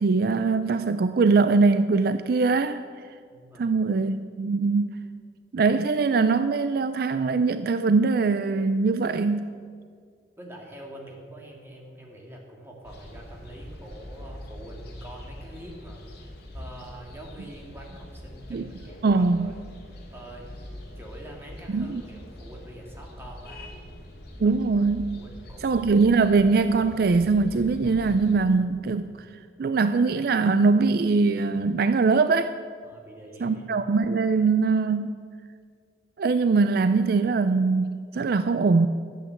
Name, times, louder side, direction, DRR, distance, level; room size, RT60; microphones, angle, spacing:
voice 1, 0.0-2.8 3.6-4.9 5.5-9.5 18.5-18.7 19.0-19.5 21.7-22.0 24.4-25.2 25.6-29.3 29.6-32.6 33.4-35.1 36.2-38.9, right 4 dB, 55° right, 11 dB, 0.4 m, -22 dB
voice 2, 3.3-3.7 10.4-19.6 20.1-20.5 21.0-23.8 25.1-25.9 32.8-33.6, right 1 dB, 15° right, -1 dB, 2.3 m, -45 dB
sound 1, 12.8-28.3, left 1 dB, 60° left, 2.4 m, -43 dB
13.0 x 8.5 x 8.0 m, 2.1 s
head